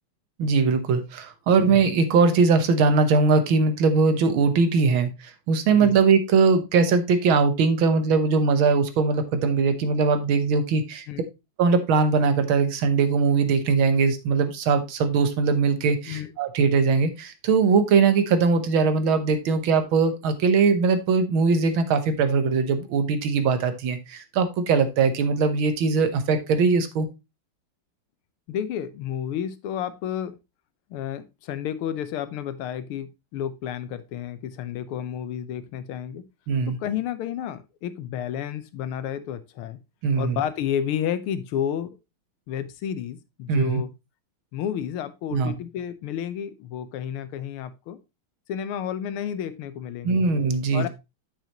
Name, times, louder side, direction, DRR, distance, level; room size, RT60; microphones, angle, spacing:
voice 1, 0.4-5.1 5.5-11.1 11.6-27.1 36.5-36.8 40.0-40.4 43.5-43.8 45.3-45.5 50.0-50.9, right 4 dB, 70° right, 9 dB, 1.8 m, -21 dB
voice 2, 28.5-30.4 30.9-36.2 36.7-39.8 40.2-41.9 42.5-43.9 44.5-48.0 48.5-50.2 50.7-50.9, left 9 dB, 85° left, 13 dB, 1.7 m, -31 dB
9.2 x 6.7 x 2.9 m, 0.24 s
omnidirectional pair, 2.4 m